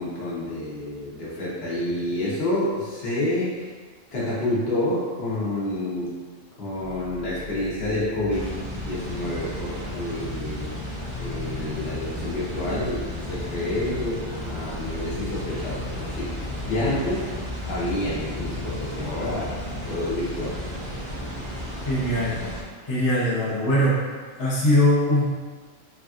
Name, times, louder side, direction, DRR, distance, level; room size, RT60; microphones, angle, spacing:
voice 1, 0.0-3.6 4.1-6.2 6.6-8.5 8.8-10.7 11.2-17.3 17.7-19.5 19.8-20.5, left 1 dB, 55° left, -8 dB, 1.0 m, -28 dB
sound 1, 6.8-22.4, left 4 dB, 80° left, 1.0 m, -39 dB
sound 2, 8.3-22.6, equal, 35° right, 0.5 m, -34 dB
voice 2, 21.9-22.4 22.8-24.0 24.4-25.3, left 1 dB, 25° left, -8 dB, 0.5 m, -21 dB
3.3 x 2.4 x 2.4 m, 1.5 s
omnidirectional pair, 1.3 m